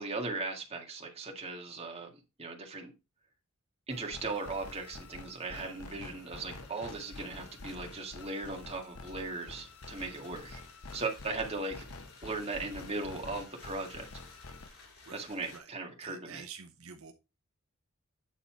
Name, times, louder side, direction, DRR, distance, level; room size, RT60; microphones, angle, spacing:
voice 1, 0.0-2.1 2.4-2.9 3.9-10.6 10.9-11.8 12.2-14.1 15.1-16.4, right 3 dB, 30° right, 2.0 m, -38 dB
sound 1, 3.9-14.7, left 3 dB, 85° left, 1.0 m, -48 dB
sound 2, 4.3-15.6, left 3 dB, 70° left, 4.3 m, -57 dB
voice 2, 16.0-17.1, right 6 dB, 80° right, 0.9 m, -48 dB
9.2 x 4.2 x 4.5 m
head